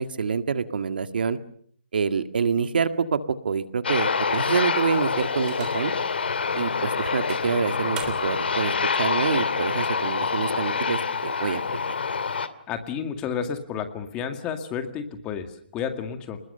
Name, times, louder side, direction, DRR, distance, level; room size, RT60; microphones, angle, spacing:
voice 1, 0.0-1.4 1.9-5.9 6.5-8.7 9.0-11.6, right 5 dB, 65° right, 9 dB, 1.9 m, -26 dB
Aircraft, 3.8-12.5, left 5 dB, 75° left, 2.6 m, -26 dB
sound 1, 4.3-6.0 6.6-6.7 7.3-8.5, right 7 dB, 15° right, 3.4 m, -42 dB
voice 2, 12.7-16.4, left 7 dB, 15° left, 7 dB, 2.1 m, -31 dB
29.5 x 20.5 x 6.8 m, 0.63 s
hypercardioid pair, 165°, 6 cm